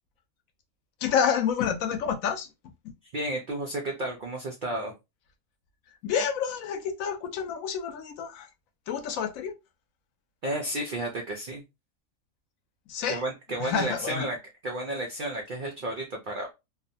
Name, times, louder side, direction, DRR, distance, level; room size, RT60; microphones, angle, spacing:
voice 1, 1.0-2.5 2.8-2.9 6.0-8.5 8.9-9.5 12.9-13.2 13.6-14.3, left 7 dB, 75° left, 1.0 m, -28 dB
voice 2, 3.1-4.9 10.4-11.6 13.1-14.4 14.6-16.5, right 1 dB, 85° right, 0.4 m, -32 dB
2.7 x 2.1 x 2.6 m
omnidirectional pair, 1.5 m